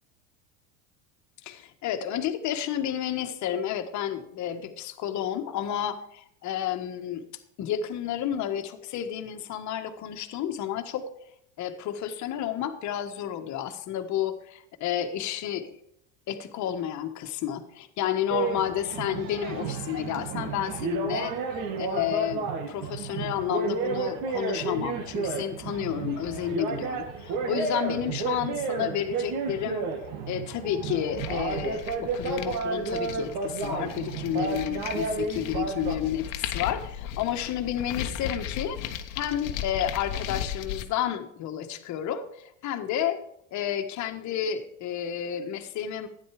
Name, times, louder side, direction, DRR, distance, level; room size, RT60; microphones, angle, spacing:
voice 1, 1.4-7.3 7.6-11.0 11.6-15.8 16.3-29.9 30.3-43.2 43.5-46.1, left 10 dB, 45° left, 7 dB, 1.5 m, -31 dB
sound 1, 18.3-36.0, right 5 dB, 55° right, 2.1 m, -32 dB
sound 2, 31.2-40.8, left 10 dB, 75° left, 1.1 m, -36 dB
12.0 x 9.8 x 5.0 m, 0.72 s
supercardioid pair, 110°, 39 cm